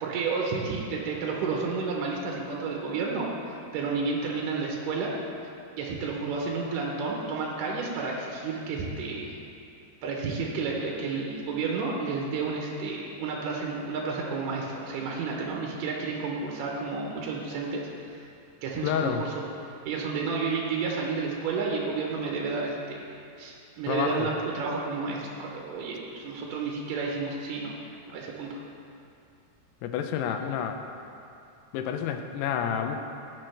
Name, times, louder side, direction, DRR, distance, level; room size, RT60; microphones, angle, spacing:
voice 1, 0.0-3.3 3.7-5.1 5.7-9.4 10.0-18.3 18.6-19.4 19.9-23.1 23.4-27.8 28.1-28.6, right 4 dB, 75° right, -2 dB, 2.1 m, -31 dB
voice 2, 18.8-19.2 23.9-24.3 29.8-30.8 31.7-33.0, left 8 dB, 85° left, 5 dB, 2.6 m, -29 dB
18.0 x 6.3 x 3.3 m, 2.7 s
omnidirectional pair, 4.8 m